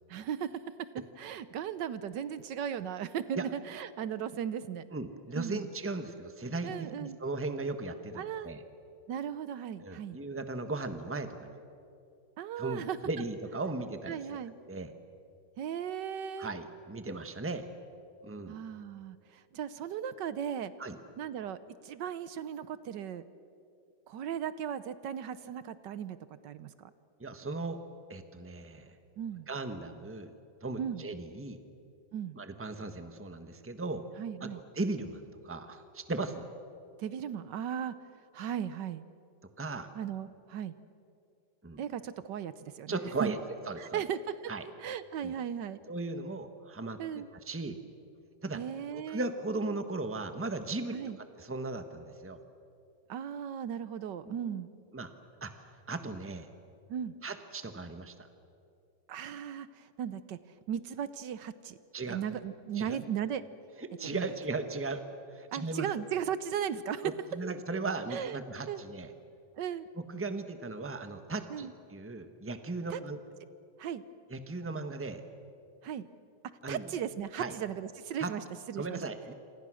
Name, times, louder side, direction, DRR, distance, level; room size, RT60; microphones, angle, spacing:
voice 1, 0.1-0.5 1.2-4.9 5.4-5.7 6.6-7.2 8.1-8.5 9.1-10.2 12.4-13.0 14.1-14.5 15.6-16.5 18.5-20.7 21.2-23.2 24.1-26.2 26.4-26.9 29.2-29.5 30.8-31.0 32.1-32.4 34.2-34.6 37.0-37.9 38.3-39.0 39.9-40.7 41.8-43.4 43.8-44.5 44.8-45.8 47.0-47.3 48.5-49.3 50.9-51.2 53.1-54.7 56.9-57.1 59.1-60.4 60.7-61.8 62.1-63.4 64.0-64.3 65.5-67.1 68.1-68.4 68.7-68.8 69.6-69.8 71.5-71.7 72.9-73.0 73.8-74.0 75.8-76.1 76.7-79.0, right 9 dB, 75° right, 14 dB, 1.4 m, -36 dB
voice 2, 4.9-8.6 9.8-11.6 12.6-14.4 14.7-14.9 16.4-17.6 18.2-18.6 20.8-21.0 27.2-27.8 28.1-28.9 29.5-30.3 30.6-31.6 32.3-34.0 34.4-34.5 34.7-36.5 39.6-39.9 41.6-41.8 42.9-43.4 43.7-44.0 44.5-44.7 45.2-45.3 45.9-47.8 48.4-48.6 48.9-52.4 54.2-54.4 54.9-55.1 55.4-56.5 57.2-58.1 61.9-62.2 62.7-63.0 63.8-65.0 65.3-65.9 67.0-69.1 70.0-73.2 74.3-75.2 76.6-76.8 77.4-77.5 78.2-78.3 78.8-79.3, right 3 dB, 10° right, 8 dB, 1.1 m, -37 dB
27.5 x 26.5 x 6.3 m, 2.5 s
omnidirectional pair, 2.0 m